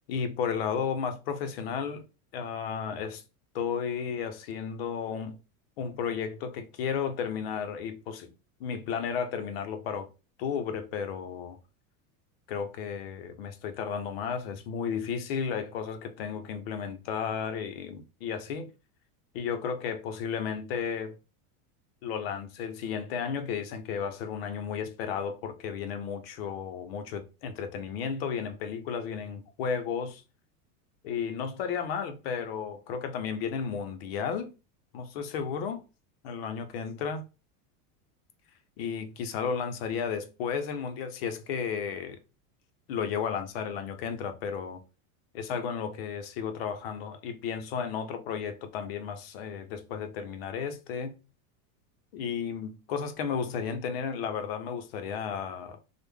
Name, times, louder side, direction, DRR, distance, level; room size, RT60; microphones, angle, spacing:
voice 1, 0.1-2.0 2.3-3.2 3.5-5.4 5.8-8.3 8.6-10.1 10.4-11.6 12.5-18.7 19.3-21.2 22.0-30.2 31.0-34.5 34.9-35.8 36.2-37.2 38.8-42.2 42.9-44.8 45.3-51.1 52.1-55.8, left 6 dB, 45° left, 0.4 m, -33 dB
3.2 x 2.0 x 3.4 m
supercardioid pair, 180°, 46 cm